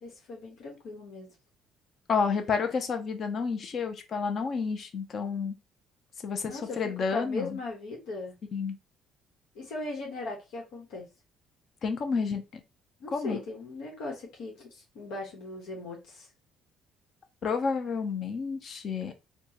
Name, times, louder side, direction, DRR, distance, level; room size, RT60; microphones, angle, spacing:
voice 1, 0.0-1.3 6.5-6.8 7.1-8.4 9.5-11.1 13.0-16.3, left 2 dB, 80° left, 1.2 m, -38 dB
voice 2, 2.1-5.6 6.2-7.6 8.5-8.8 11.8-12.6 13.1-13.4 17.4-19.1, left 5 dB, 40° left, 0.7 m, -30 dB
4.5 x 2.3 x 2.9 m
cardioid pair, 135°, 0 cm